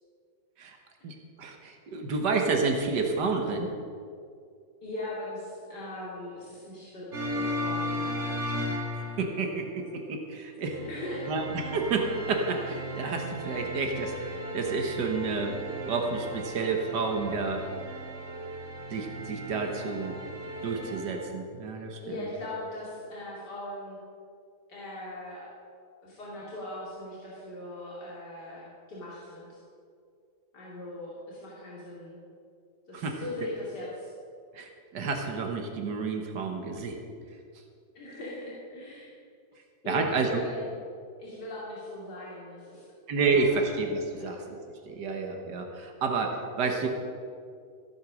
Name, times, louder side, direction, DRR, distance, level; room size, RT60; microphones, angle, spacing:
voice 1, 1.0-3.7 9.2-10.8 11.3-15.6 15.9-17.6 18.9-20.2 20.6-22.3 32.9-33.2 34.5-37.0 39.9-40.4 43.1-46.9, right 4 dB, 85° right, 3 dB, 1.9 m, -30 dB
voice 2, 4.8-8.2 10.8-11.3 22.0-24.0 24.7-25.5 26.0-29.6 30.5-32.2 32.9-34.1 37.9-39.2 39.8-40.7 41.2-42.9 43.2-43.6 44.1-44.4, left 1 dB, 80° left, -7 dB, 3.1 m, -39 dB
sound 1, 7.1-9.6 10.7-21.2, equal, 45° right, 2.2 m, -36 dB
15.0 x 8.9 x 6.2 m, 2.3 s
omnidirectional pair, 1.8 m